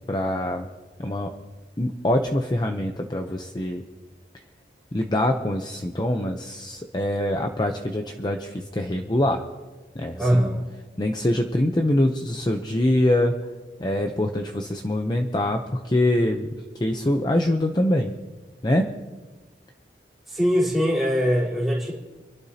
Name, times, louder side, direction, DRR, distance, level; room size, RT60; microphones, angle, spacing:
voice 1, 0.1-0.7 1.0-1.3 1.8-3.8 4.9-9.4 10.0-10.5 11.0-13.3 13.8-16.5 16.8-18.1 18.6-18.9, left 1 dB, 25° left, 4 dB, 0.7 m, -24 dB
voice 2, 10.2-10.6 20.3-21.9, equal, ahead, -7 dB, 3.9 m, -22 dB
26.5 x 12.0 x 2.9 m, 1.2 s
head